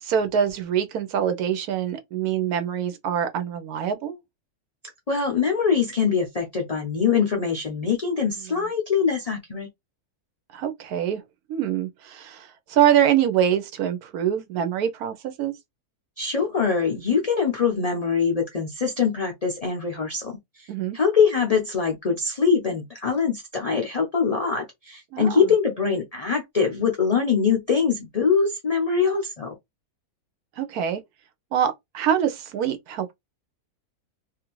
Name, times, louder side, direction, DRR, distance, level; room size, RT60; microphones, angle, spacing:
voice 1, 0.0-4.2 10.5-11.2 11.5-15.5 20.7-21.0 25.1-25.5 30.6-31.0 31.5-33.1, right 9 dB, 80° right, 1.1 m, -24 dB
voice 2, 5.1-9.7 16.2-20.3 20.6-20.7 20.9-29.5, left 6 dB, 45° left, 0.4 m, -23 dB
2.7 x 2.4 x 3.0 m
omnidirectional pair, 1.6 m